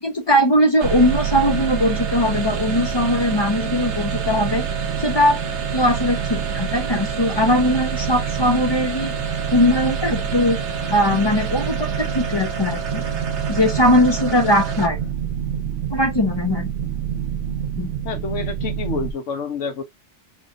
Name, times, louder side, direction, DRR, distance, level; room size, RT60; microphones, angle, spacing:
voice 1, 0.0-4.6 5.0-5.4 5.7-9.1 9.5-10.6 10.9-13.0 13.5-15.0 15.9-16.7 17.8-17.9, left 1 dB, 30° left, 0.5 m, -20 dB
sound 1, 0.8-15.1, right 4 dB, 70° right, 1.0 m, -31 dB
sound 2, 0.8-19.1, right 9 dB, 85° right, 1.1 m, -27 dB
voice 2, 18.0-19.8, left 5 dB, 85° left, 1.1 m, -28 dB
3.1 x 3.0 x 2.5 m
omnidirectional pair, 1.2 m